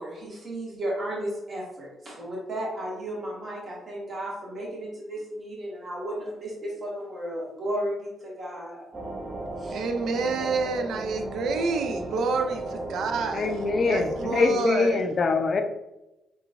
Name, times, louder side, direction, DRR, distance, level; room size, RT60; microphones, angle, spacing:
voice 1, 0.0-8.9 9.6-9.8, right 1 dB, 50° right, 1.3 m, -34 dB
sound 1, 8.9-14.5, right 2 dB, 25° right, 0.7 m, -35 dB
voice 2, 9.7-15.1, right 4 dB, 70° right, 0.4 m, -29 dB
voice 3, 13.3-15.6, left 3 dB, 50° left, 0.4 m, -23 dB
3.7 x 2.5 x 2.3 m
hypercardioid pair, 50°, 0 cm